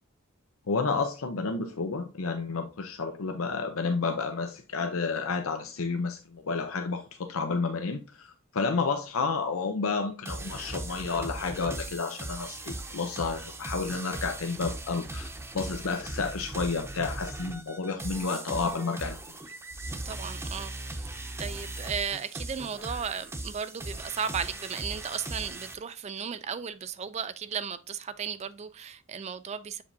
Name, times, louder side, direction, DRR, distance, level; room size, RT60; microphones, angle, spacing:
voice 1, 0.7-15.3 15.5-19.2, left 4 dB, 90° left, 0.7 m, -31 dB
sound 1, 10.3-25.7, right 2 dB, 15° right, 0.8 m, -39 dB
voice 2, 20.1-21.1 21.4-29.8, right 7 dB, 30° right, 0.4 m, -35 dB
7.2 x 5.1 x 2.6 m
head